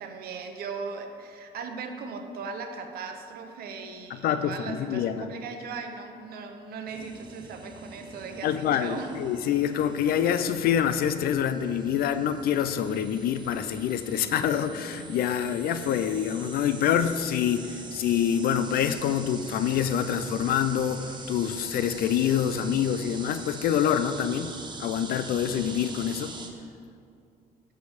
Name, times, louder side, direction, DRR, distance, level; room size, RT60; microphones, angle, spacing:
voice 1, 0.0-9.2, right 4 dB, 65° right, 5 dB, 0.8 m, -38 dB
voice 2, 4.1-5.3 8.4-26.3, left 9 dB, 65° left, 11 dB, 0.4 m, -26 dB
sound 1, 6.9-26.5, right 3 dB, 25° right, 0.8 m, -43 dB
8.4 x 3.4 x 6.3 m, 2.4 s
cardioid pair, 110°, 17 cm